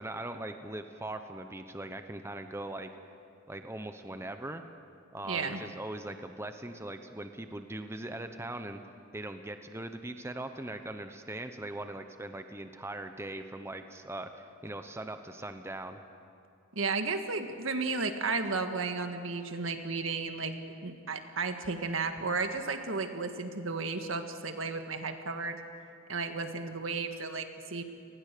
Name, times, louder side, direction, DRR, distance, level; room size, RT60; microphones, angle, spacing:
voice 1, 0.0-2.9 3.5-4.6 5.1-8.8 9.1-16.0, right 1 dB, 15° right, 7 dB, 0.9 m, -40 dB
voice 2, 5.3-5.6 16.8-20.5 20.8-25.6 26.1-27.8, right 4 dB, 75° right, 6 dB, 1.7 m, -33 dB
29.5 x 19.5 x 6.8 m, 2.6 s
head